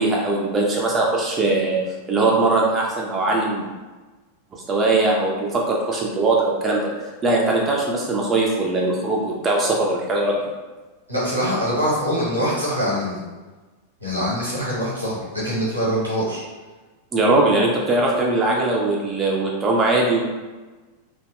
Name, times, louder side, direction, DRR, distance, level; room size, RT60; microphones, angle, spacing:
voice 1, 0.0-1.8 2.1-3.7 4.5-6.9 7.2-10.4 17.1-20.2, right 2 dB, 20° right, -2 dB, 0.4 m, -20 dB
voice 2, 11.1-13.2 14.0-16.4, equal, 85° right, -7 dB, 1.0 m, -23 dB
2.5 x 2.1 x 2.2 m, 1.2 s
figure-of-eight pair, 90°, 0 cm